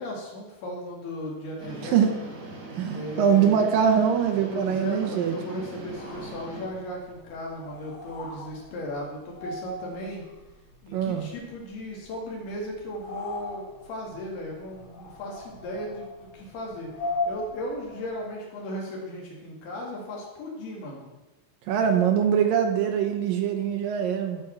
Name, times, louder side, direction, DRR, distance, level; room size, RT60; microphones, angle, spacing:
voice 1, 0.0-2.0 2.9-3.6 4.5-10.2 10.8-16.9 17.3-21.1 21.8-21.9, left 1 dB, 85° left, -2 dB, 4.3 m, -36 dB
sound 1, 1.6-6.7, right 2 dB, 35° right, 1.4 m, -41 dB
voice 2, 1.8-2.1 2.7-5.4 10.9-11.3 21.7-24.4, right 8 dB, 70° right, 5 dB, 2.5 m, -23 dB
sound 2, 5.8-18.3, left 2 dB, 60° left, 3.5 m, -40 dB
13.5 x 5.2 x 5.9 m, 1.1 s
omnidirectional pair, 4.4 m